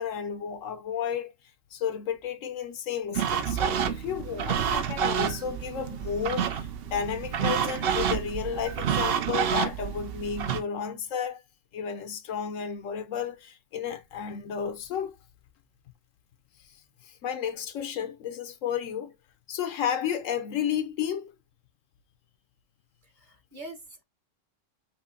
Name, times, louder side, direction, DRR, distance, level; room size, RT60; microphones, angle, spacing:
voice 1, 0.0-1.3 1.7-11.4 11.7-15.2 17.0-19.1 19.5-21.3, left 8 dB, 80° left, 1.1 m, -32 dB
sound 1, 3.1-10.6, right 8 dB, 60° right, 0.7 m, -29 dB
voice 2, 23.0-24.0, right 1 dB, 40° right, 1.3 m, -44 dB
5.9 x 2.7 x 2.7 m
omnidirectional pair, 1.3 m